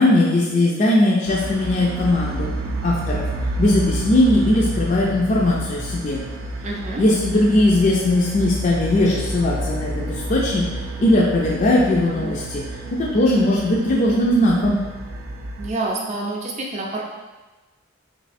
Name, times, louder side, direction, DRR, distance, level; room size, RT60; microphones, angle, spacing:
voice 1, 0.0-2.5 2.8-3.3 3.6-6.2 7.0-10.7 11.0-12.6 12.9-14.8, left 1 dB, 40° left, -3 dB, 0.4 m, -19 dB
sound 1, 1.3-15.7, right 1 dB, 85° right, 0.4 m, -29 dB
voice 2, 6.6-7.0 15.6-17.0, right 2 dB, 35° right, -2 dB, 0.6 m, -27 dB
3.3 x 2.8 x 4.1 m, 1.2 s
head